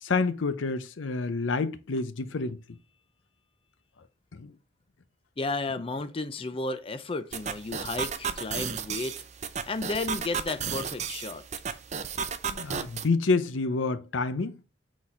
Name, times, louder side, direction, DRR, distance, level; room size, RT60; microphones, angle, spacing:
voice 1, 0.0-2.6 4.3-4.5 12.5-14.6, left 3 dB, 80° left, 0.6 m, -28 dB
voice 2, 5.4-9.2 9.7-11.4, left 3 dB, 30° left, 0.5 m, -33 dB
sound 1, 7.3-13.1, right 6 dB, 35° right, 0.5 m, -34 dB
6.2 x 4.1 x 4.3 m
head